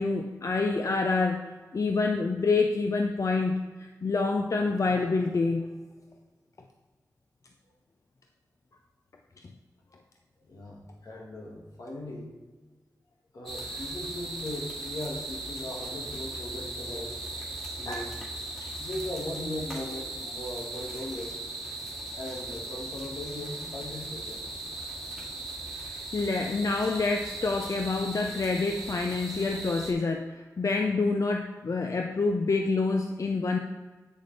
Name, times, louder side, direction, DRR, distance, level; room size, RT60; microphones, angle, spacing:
voice 1, 0.0-1.4 1.7-5.7 13.7-13.8 17.9-18.1 18.6-18.7 25.7-33.6, left 3 dB, 55° left, 3 dB, 0.5 m, -27 dB
voice 2, 10.5-12.3 13.3-17.2 17.7-18.1 18.8-21.4 22.2-24.5, left 1 dB, 80° left, -1 dB, 1.6 m, -38 dB
sound 1, 13.4-29.9, right 2 dB, 5° left, 2.2 m, -38 dB
8.2 x 6.5 x 3.3 m, 1.3 s
cardioid pair, 55°, 6 cm